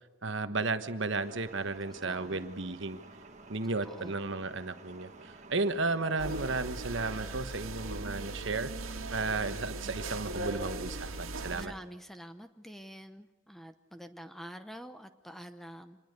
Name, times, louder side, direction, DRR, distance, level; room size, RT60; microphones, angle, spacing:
voice 1, 0.2-3.0 3.5-8.7 9.1-11.7, right 3 dB, 55° right, 10 dB, 1.3 m, -34 dB
sound 1, 1.1-7.4, right 2 dB, 35° right, 1.7 m, -52 dB
voice 2, 1.8-2.5 3.6-4.1 11.5-16.0, equal, ahead, 9 dB, 0.8 m, -47 dB
sound 2, 6.2-11.7, right 2 dB, 75° right, 2.0 m, -38 dB
26.0 x 20.0 x 6.7 m, 1.2 s
head